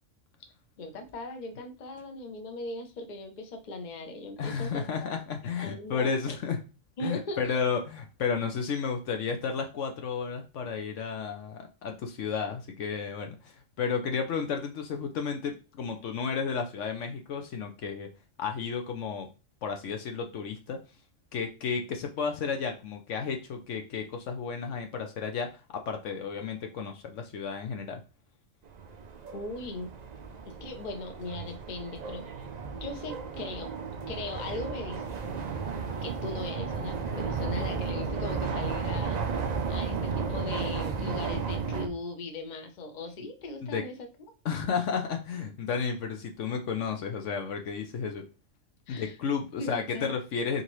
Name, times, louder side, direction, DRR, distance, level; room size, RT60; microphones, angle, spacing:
voice 1, 0.8-4.9 5.6-6.4 7.0-7.6 29.3-29.9 30.5-32.3 32.7-33.7 34.1-35.2 36.0-43.9 48.9-49.2 49.6-50.1, left 2 dB, 40° left, 5 dB, 0.8 m, -39 dB
voice 2, 4.4-6.6 7.0-18.1 18.4-19.3 19.6-20.8 21.3-28.0 43.6-43.8 44.4-48.2 48.9-50.6, left 6 dB, 70° left, 5 dB, 1.0 m, -32 dB
sound 1, 28.7-41.9, right 5 dB, 55° right, 0.4 m, -34 dB
4.0 x 3.9 x 3.1 m, 0.30 s
omnidirectional pair, 1.4 m